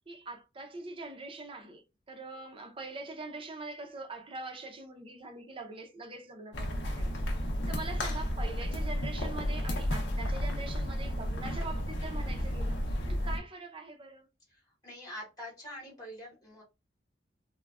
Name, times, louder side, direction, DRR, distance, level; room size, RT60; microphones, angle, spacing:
voice 1, 0.1-7.3 7.7-14.3, right 3 dB, 30° right, 0.6 m, -43 dB
sound 1, 6.5-13.4, equal, 80° left, 0.7 m, -32 dB
voice 2, 14.8-16.6, equal, 20° left, 1.0 m, -44 dB
3.3 x 2.2 x 2.3 m
head